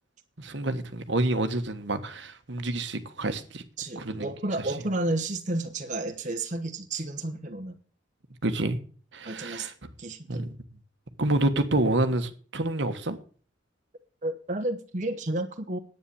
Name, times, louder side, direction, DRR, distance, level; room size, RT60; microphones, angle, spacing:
voice 1, 0.4-3.6 4.0-4.3 8.4-8.8 9.1-9.7 10.3-10.5 11.2-13.2, right 2 dB, 65° right, 1.3 m, -28 dB
voice 2, 3.8-7.8 9.2-9.7 10.0-10.5 14.2-15.8, right 2 dB, 40° right, 1.1 m, -31 dB
10.0 x 9.2 x 7.0 m
head